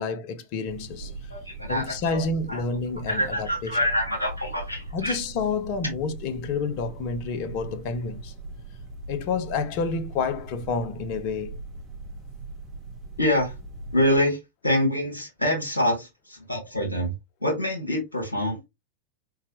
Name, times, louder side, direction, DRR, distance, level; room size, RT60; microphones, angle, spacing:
voice 1, 0.0-1.1 1.7-3.5 4.9-8.3 9.1-11.6, left 4 dB, 45° left, 0.9 m, -29 dB
sound 1, 0.7-14.2, right 3 dB, 20° right, 2.1 m, -40 dB
voice 2, 1.3-2.2 2.5-2.6 3.1-5.2 13.2-13.6 13.9-17.1 17.4-18.6, left 1 dB, 80° left, 1.9 m, -26 dB
4.1 x 3.8 x 2.9 m
figure-of-eight pair, 90°, 0 cm